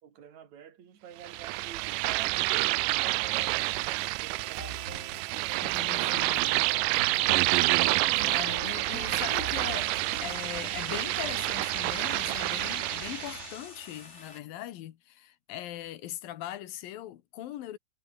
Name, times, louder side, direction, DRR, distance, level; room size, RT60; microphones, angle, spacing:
voice 1, 0.0-4.8 5.4-6.1, right 8 dB, 55° right, 4.0 m, -49 dB
sound 1, 1.2-13.5, right 19 dB, 80° right, 2.1 m, -28 dB
sound 2, 4.4-10.5, right 2 dB, 25° right, 4.8 m, -45 dB
voice 2, 5.6-6.7 8.2-17.8, left 13 dB, 90° left, 3.1 m, -40 dB
sound 3, 8.3-14.4, left 4 dB, 25° left, 2.0 m, -46 dB
omnidirectional pair, 4.0 m